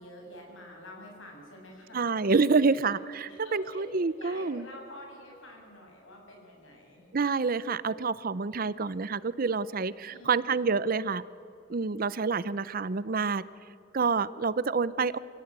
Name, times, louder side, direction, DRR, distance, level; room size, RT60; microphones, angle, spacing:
voice 1, 0.0-2.1 2.5-2.9 3.3-7.1 10.1-10.7, left 1 dB, 75° left, 1 dB, 7.1 m, -48 dB
voice 2, 1.9-4.6 7.1-11.2 11.7-13.4 13.9-15.2, right 4 dB, 45° right, 17 dB, 0.6 m, -27 dB
26.0 x 17.5 x 8.9 m, 2.5 s
head